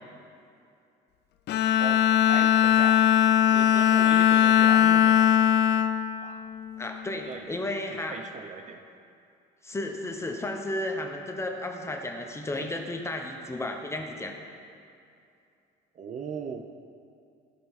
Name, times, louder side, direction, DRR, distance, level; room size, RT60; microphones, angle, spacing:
Bowed string instrument, 1.5-7.0, left 10 dB, 60° left, 0.5 m, -21 dB
voice 1, 1.8-3.1 3.5-5.4 6.2-6.4 7.2-8.8 15.9-16.7, right 5 dB, 40° right, 6 dB, 0.6 m, -39 dB
voice 2, 6.8-8.2 9.6-14.4, left 1 dB, 15° left, 3 dB, 1.0 m, -33 dB
15.5 x 5.4 x 4.1 m, 2.5 s
cardioid pair, 110°, 20 cm